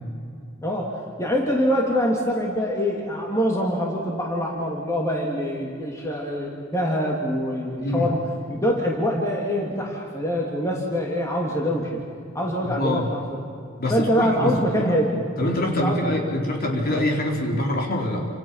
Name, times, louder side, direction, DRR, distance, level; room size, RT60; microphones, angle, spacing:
voice 1, 0.6-8.2 8.5-12.0 12.3-13.2 13.9-15.2 15.8-16.0, equal, 15° left, -2 dB, 3.0 m, -24 dB
voice 2, 7.8-8.1 12.6-13.1 13.8-15.0 15.4-18.3, left 1 dB, 45° left, 0 dB, 4.3 m, -25 dB
29.5 x 27.0 x 5.8 m, 2.5 s
head